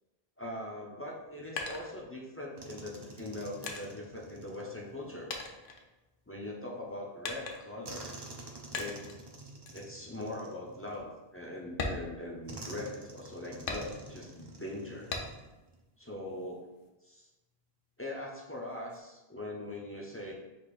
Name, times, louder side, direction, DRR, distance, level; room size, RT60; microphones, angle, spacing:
voice 1, 0.4-5.3 6.3-8.1 8.7-9.0 9.7-15.1 16.0-16.7 17.0-17.3 18.0-20.3, left 1 dB, 20° left, -3 dB, 0.4 m, -41 dB
sound 1, 1.0-2.5 3.2-5.0 5.3-6.5 7.2-7.9 8.7-9.2 9.7-9.9 10.4-10.5 10.9-11.1 11.7-12.9 13.7-14.3 15.1-15.6 16.0-16.9, left 3 dB, 65° left, 0.8 m, -40 dB
sound 2, 2.6-5.3 7.8-11.4 12.5-15.8 16.1-16.3 18.7-19.0, right 2 dB, 35° right, 0.4 m, -49 dB
4.7 x 2.5 x 4.1 m, 1.0 s
omnidirectional pair, 1.0 m